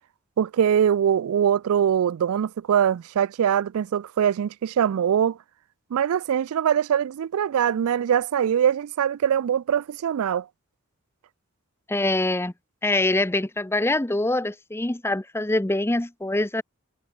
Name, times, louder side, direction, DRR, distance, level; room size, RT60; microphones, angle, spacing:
voice 1, 0.4-5.4 5.9-10.5, right 8 dB, 75° right, 0.3 m, -22 dB
voice 2, 11.9-12.5 12.8-16.6, left 2 dB, 10° left, 0.6 m, -24 dB
head